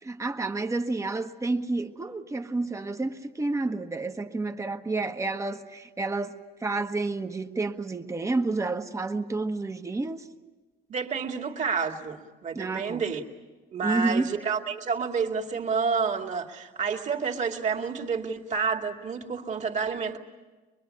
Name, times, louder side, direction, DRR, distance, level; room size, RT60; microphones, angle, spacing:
voice 1, 0.0-6.3 6.6-10.3 12.5-13.1 13.8-14.3, right 3 dB, 15° right, 1.2 m, -30 dB
voice 2, 10.9-13.2 13.7-20.2, right 5 dB, 45° right, 2.3 m, -29 dB
24.5 x 22.5 x 8.5 m
cardioid pair, 110°, 17 cm